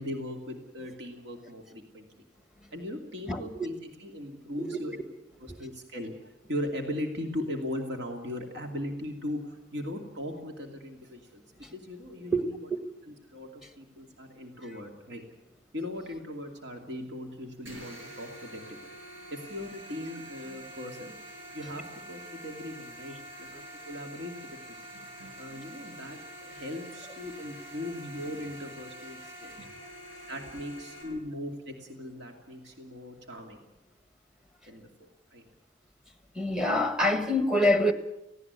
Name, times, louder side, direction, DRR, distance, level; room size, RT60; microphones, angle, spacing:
voice 1, 0.0-2.2 2.7-5.0 5.4-11.4 11.7-12.6 13.1-15.2 15.7-18.9 19.3-21.1 21.5-24.9 25.4-29.6 30.3-33.6 34.7-35.4, left 1 dB, 60° right, 2.6 m, -39 dB
sound 1, 17.7-31.0, right 1 dB, 80° right, 8.0 m, -46 dB
voice 2, 36.3-37.9, left 1 dB, 5° right, 1.5 m, -25 dB
18.5 x 17.0 x 9.6 m
head